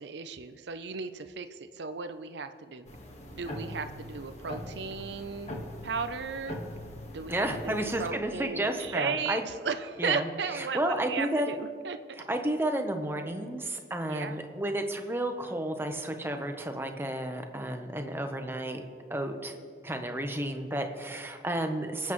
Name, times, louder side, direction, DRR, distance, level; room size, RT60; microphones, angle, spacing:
voice 1, 0.0-2.9 3.3-6.6 7.1-7.7 8.0-12.0 14.0-14.4, right 5 dB, 75° right, 9 dB, 0.6 m, -35 dB
sound 1, 2.9-8.1, left 1 dB, 40° left, 1.4 m, -41 dB
voice 2, 7.3-9.4 10.0-11.5 12.3-18.8 19.1-19.6 19.8-22.1, right 1 dB, 15° right, 5 dB, 0.9 m, -32 dB
23.5 x 8.4 x 3.1 m, 2.2 s
head